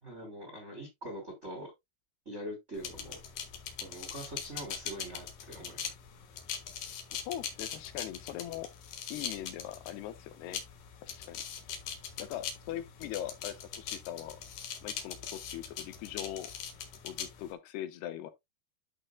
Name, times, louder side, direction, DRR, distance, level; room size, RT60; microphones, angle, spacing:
voice 1, 0.0-1.7 2.2-3.2 3.8-5.9, equal, 20° right, 2.3 m, -43 dB
sound 1, 2.8-17.5, left 8 dB, 60° left, 2.6 m, -42 dB
voice 2, 7.1-8.7 9.1-10.6 11.0-11.4 12.2-14.4 14.8-16.5 17.0-18.3, left 12 dB, 80° left, 2.8 m, -41 dB
11.0 x 6.2 x 2.2 m
omnidirectional pair, 5.0 m